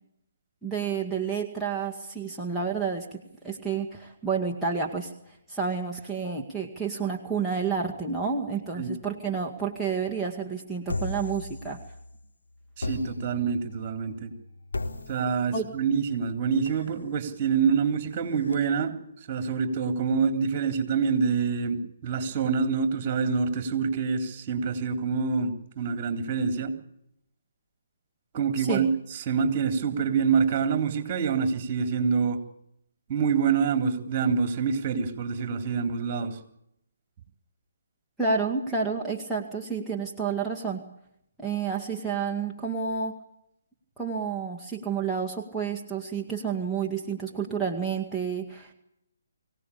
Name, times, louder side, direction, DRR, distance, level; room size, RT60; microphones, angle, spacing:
voice 1, 0.6-5.1 5.5-11.8 15.5-15.7 28.6-28.9 38.2-40.8 41.4-43.1 44.0-48.7, right 5 dB, ahead, -2 dB, 2.1 m, -30 dB
sound 1, 10.9-12.2 12.8-18.5, left 2 dB, 80° left, 3.7 m, -38 dB
voice 2, 12.8-14.3 15.1-19.0 19.3-26.7 28.3-32.4 33.1-36.4, right 6 dB, 35° right, 7 dB, 3.7 m, -26 dB
24.5 x 17.5 x 8.6 m, 0.77 s
figure-of-eight pair, 145°, 0 cm